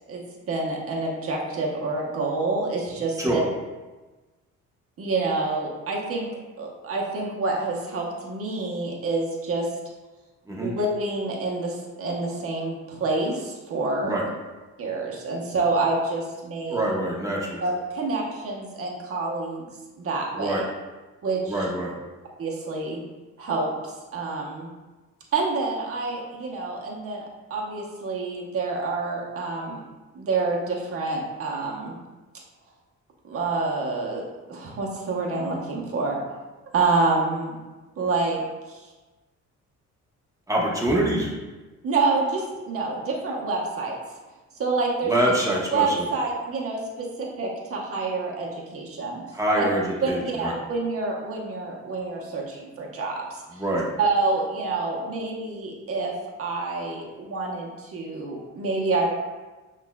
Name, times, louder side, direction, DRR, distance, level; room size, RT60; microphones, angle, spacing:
voice 1, 0.5-3.4 5.0-6.3 6.6-9.7 10.6-14.2 14.8-16.8 17.6-19.7 20.0-20.6 21.2-21.7 22.4-23.0 23.4-23.7 24.1-24.7 25.3-27.2 27.5-29.8 30.1-31.9 33.2-36.2 36.7-37.6 38.0-38.4 38.7-38.9 41.8-44.0 44.6-45.1 45.5-49.2 49.5-49.6 50.0-53.6 54.0-56.1 56.4-59.1, right 3 dB, 50° right, -2 dB, 0.9 m, -27 dB
voice 2, 16.7-17.6 20.4-20.6 21.5-21.9 40.5-41.3 45.1-45.9 49.3-50.5 53.6-53.8, right 1 dB, 10° right, -3 dB, 0.9 m, -25 dB
5.8 x 2.5 x 2.2 m, 1.2 s
cardioid pair, 90°, 30 cm